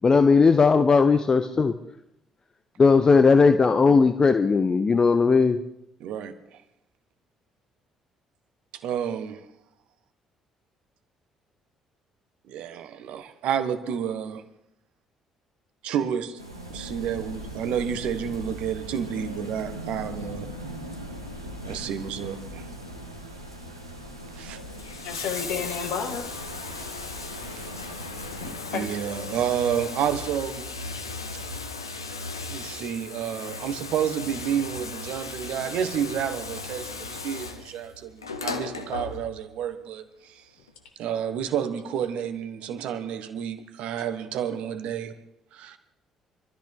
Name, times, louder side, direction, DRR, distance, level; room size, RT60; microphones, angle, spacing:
voice 1, 0.0-1.7 2.8-5.6, left 4 dB, 30° left, 0.7 m, -18 dB
voice 2, 6.0-6.6 8.7-9.4 12.5-14.4 15.8-16.4 16.7-20.5 21.6-22.7 24.3-24.6 27.5-27.9 28.7-30.7 31.3-31.4 32.5-40.4 41.0-45.2 45.5-45.8, right 8 dB, 60° right, 1.2 m, -30 dB
sound 1, 16.4-28.5, equal, 90° right, 1.1 m, -39 dB
Bathtub (filling or washing), 24.6-39.6 40.7-40.8, left 3 dB, 85° left, 0.8 m, -36 dB
voice 3, 25.0-26.3 28.4-28.9, left 7 dB, 60° left, 1.9 m, -31 dB
25.0 x 13.5 x 3.7 m
figure-of-eight pair, 45°, 2 cm